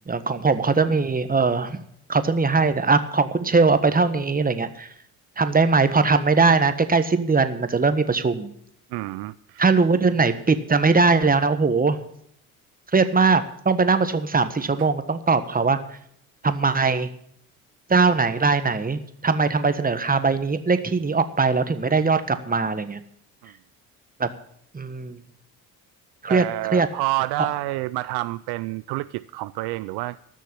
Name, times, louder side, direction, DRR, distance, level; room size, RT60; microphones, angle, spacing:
voice 1, 0.1-1.8 2.1-4.9 5.4-8.5 9.6-12.0 12.9-15.8 16.4-17.1 17.9-23.0 24.2-24.3 24.7-25.2 26.2-26.4 26.7-26.9 27.4-27.5, right 4 dB, 20° right, 1.4 m, -20 dB
voice 2, 8.9-9.7 14.8-14.9 23.4-23.5 26.3-30.2, right 19 dB, 65° right, 0.5 m, -28 dB
14.0 x 6.4 x 9.8 m
hypercardioid pair, 60°, 43 cm